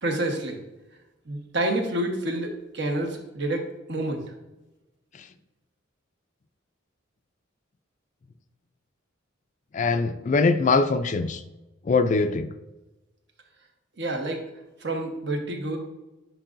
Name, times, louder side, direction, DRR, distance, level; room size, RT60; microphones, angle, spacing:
voice 1, 0.0-0.6 1.3-3.1 3.3-3.6 3.9-4.2 14.0-14.4 14.8-15.8, right 1 dB, 55° right, 3 dB, 1.2 m, -28 dB
voice 2, 9.7-11.4 11.9-12.5, left 4 dB, 35° left, 10 dB, 0.3 m, -22 dB
10.0 x 4.7 x 2.6 m, 1.0 s
head